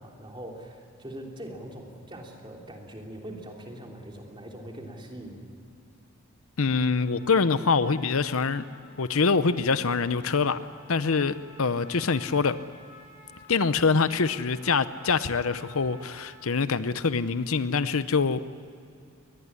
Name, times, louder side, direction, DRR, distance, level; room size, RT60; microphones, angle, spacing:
voice 1, 0.0-5.5, right 1 dB, 20° right, 0 dB, 3.4 m, -42 dB
voice 2, 6.6-8.6 9.0-10.6 10.9-12.6 13.5-18.4, left 4 dB, 75° left, 14 dB, 0.8 m, -25 dB
Trumpet, 7.0-16.5, left 1 dB, 50° left, 7.5 m, -52 dB
23.0 x 19.5 x 9.8 m, 2.4 s
head